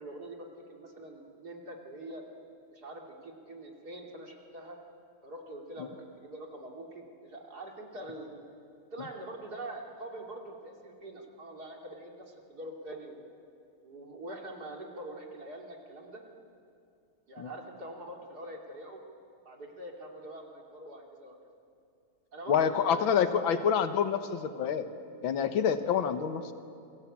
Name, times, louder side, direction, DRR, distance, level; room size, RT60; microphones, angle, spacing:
voice 1, 0.0-2.2 2.7-4.8 5.2-8.4 8.9-13.2 13.8-16.2 17.3-19.0 19.4-21.4 22.3-23.7 25.9-26.1, right 1 dB, 50° right, 0 dB, 3.4 m, -44 dB
voice 2, 22.5-24.9 25.2-26.5, left 7 dB, 75° left, 9 dB, 2.0 m, -27 dB
28.5 x 23.0 x 8.7 m, 2.5 s
omnidirectional pair, 2.2 m